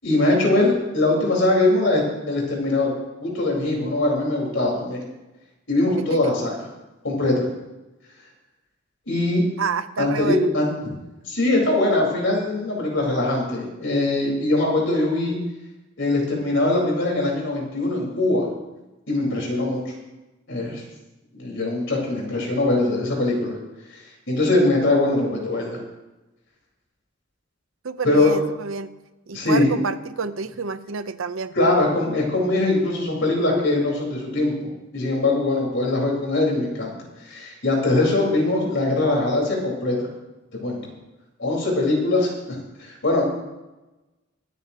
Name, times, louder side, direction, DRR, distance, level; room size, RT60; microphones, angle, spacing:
voice 1, 0.0-2.9 3.2-5.0 5.7-6.6 7.0-7.4 9.1-9.4 10.0-10.7 11.2-15.4 16.0-18.5 19.1-19.9 20.5-20.8 21.3-23.6 23.9-25.8 28.0-28.3 29.3-29.7 31.5-36.9 37.2-40.1 40.6-40.9 41.4-42.3 42.8-43.2, left 2 dB, 65° left, -2 dB, 4.6 m, -22 dB
voice 2, 6.0-6.3 9.6-10.5 27.8-28.9 29.3-31.5, right 5 dB, 85° right, 12 dB, 0.7 m, -29 dB
24.5 x 9.4 x 3.0 m, 1.1 s
head